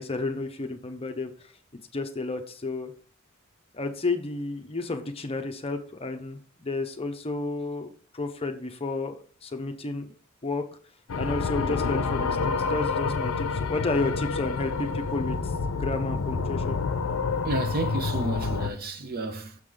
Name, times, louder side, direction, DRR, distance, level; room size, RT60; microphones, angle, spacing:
voice 1, 0.0-1.5 1.9-2.9 3.7-10.7 11.2-15.4 15.8-16.8, left 3 dB, 25° left, 0.6 m, -31 dB
sound 1, 11.1-18.7, left 4 dB, 75° left, 0.5 m, -28 dB
voice 2, 17.4-19.6, right 2 dB, 45° right, 0.7 m, -31 dB
6.6 x 4.8 x 3.8 m
head